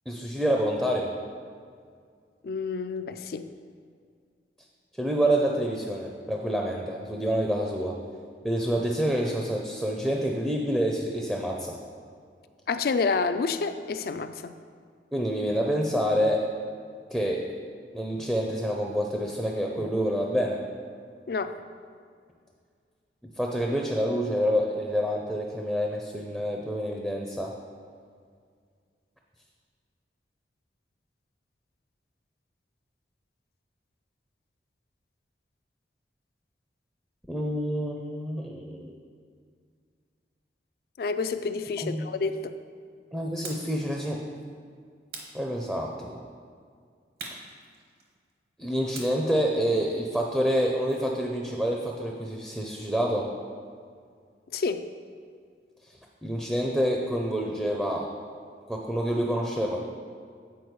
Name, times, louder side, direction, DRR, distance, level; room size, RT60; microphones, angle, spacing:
voice 1, 0.1-1.1 5.0-8.0 8.4-11.8 15.1-16.4 17.1-17.4 17.9-20.6 23.4-27.5 37.3-38.9 41.8-42.1 43.1-44.2 45.3-46.1 48.6-53.3 56.2-58.1 58.7-59.8, equal, 5° right, -1 dB, 0.5 m, -27 dB
voice 2, 2.4-3.5 12.7-14.5 21.3-21.6 41.0-42.5 54.5-54.9, left 4 dB, 55° left, 10 dB, 0.3 m, -29 dB
sound 1, 43.4-43.8 45.1-46.0 47.2-48.3 48.9-51.2, right 3 dB, 55° right, 1.0 m, -44 dB
8.2 x 4.7 x 4.6 m, 2.1 s
head